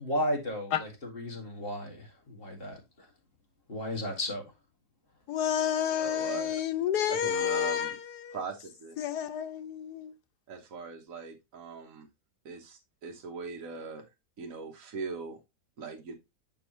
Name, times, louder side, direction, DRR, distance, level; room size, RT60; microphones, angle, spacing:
voice 1, 0.0-3.1 3.7-4.4, left 1 dB, 35° left, 2.1 m, -34 dB
voice 2, 5.3-7.9 8.2-8.4 9.0-10.1, left 9 dB, 85° left, 1.4 m, -30 dB
voice 3, 5.9-6.6 7.1-8.0 8.3-9.0 10.5-12.1 12.4-14.0 14.4-15.4 15.8-16.1, right 5 dB, 60° right, 1.4 m, -40 dB
7.0 x 5.4 x 3.1 m
omnidirectional pair, 1.7 m